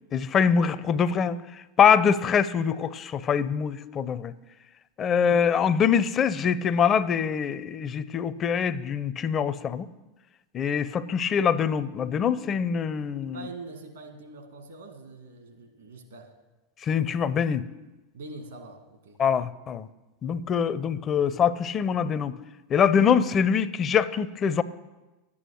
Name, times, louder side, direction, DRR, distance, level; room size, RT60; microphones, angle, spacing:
voice 1, 0.1-4.3 5.0-9.9 10.5-13.5 16.8-17.6 19.2-19.9 20.2-22.4 22.7-24.6, left 7 dB, 35° left, 16 dB, 0.5 m, -24 dB
voice 2, 13.3-16.3 18.1-19.2, right 3 dB, 75° right, 5 dB, 1.9 m, -43 dB
11.0 x 8.6 x 6.4 m, 1.1 s
figure-of-eight pair, 85°, 0 cm